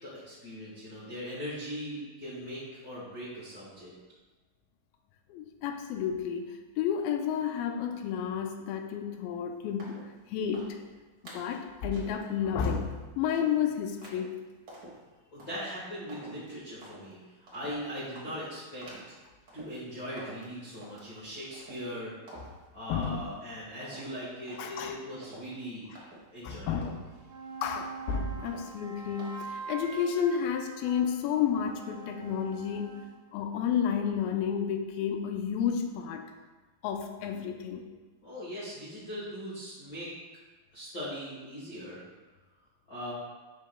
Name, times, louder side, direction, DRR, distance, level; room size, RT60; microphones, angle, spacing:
voice 1, 0.0-3.9 15.3-17.2 17.5-18.8 19.5-22.1 22.7-25.9 26.3-26.9 38.2-40.1 40.7-42.0 42.9-43.1, equal, 50° left, -11 dB, 1.1 m, -40 dB
voice 2, 5.3-10.8 11.2-14.4 22.9-23.2 24.6-25.0 26.4-27.0 27.6-33.0 33.3-36.2 36.8-37.9, left 8 dB, 90° left, 5 dB, 2.4 m, -31 dB
sound 1, 9.8-10.1 10.5-10.9 11.2-11.5 11.9-12.2 12.6-12.9 13.3-13.6 14.0-14.3 14.7-15.0 15.4-15.6 16.1-16.5 16.8-17.1 17.5-17.8 18.1-18.5 18.8-19.2 19.5-19.8 20.2-21.2 21.5-22.0 22.3-22.6 23.0-23.4 23.8-26.5 26.8-27.2 27.6-28.1 28.4-28.8 29.2-29.3, right 1 dB, 85° right, 0.8 m, -49 dB
sound 2, 27.0-33.2, right 5 dB, 60° right, 2.0 m, -44 dB
8.0 x 5.5 x 2.2 m, 1.3 s
omnidirectional pair, 4.1 m